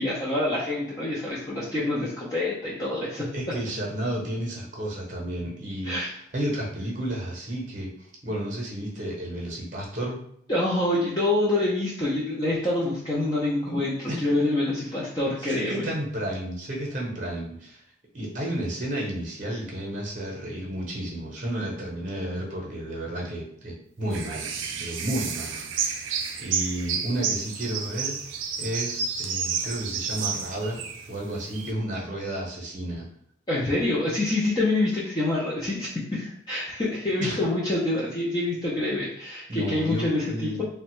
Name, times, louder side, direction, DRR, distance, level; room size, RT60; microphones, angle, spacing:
voice 1, 0.0-3.3 5.8-6.1 10.5-15.9 33.5-40.6, left 2 dB, 20° left, -7 dB, 0.5 m, -26 dB
voice 2, 3.3-10.2 13.7-14.3 15.4-17.8 18.1-24.5 24.8-28.2 28.6-33.1 37.2-37.4 39.5-40.6, right 1 dB, 40° right, -2 dB, 0.7 m, -32 dB
sound 1, 24.1-31.7, right 6 dB, 85° right, 0.4 m, -31 dB
3.4 x 2.1 x 3.0 m, 0.68 s
head